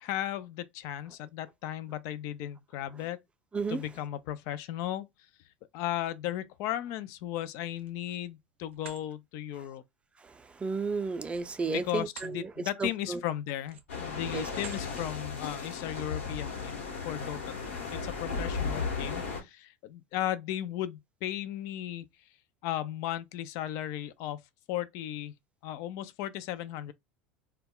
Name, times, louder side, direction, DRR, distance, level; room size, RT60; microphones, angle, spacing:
voice 1, 0.0-3.2 3.7-5.1 5.7-9.8 11.7-22.1 22.6-24.4 24.7-25.3 25.6-26.9, left 12 dB, 55° left, 0.4 m, -36 dB
sound 1, 7.7-8.3 8.7-9.0 11.2-12.4 12.8-13.0 13.6-14.0 14.5-14.9, right 7 dB, 80° right, 0.5 m, -48 dB
voice 2, 10.6-12.5 12.8-13.2 14.3-14.4, right 4 dB, 20° right, 0.5 m, -32 dB
sound 2, 13.9-19.4, left 5 dB, 80° left, 1.0 m, -35 dB
2.2 x 2.1 x 3.6 m
hypercardioid pair, 80°, 6 cm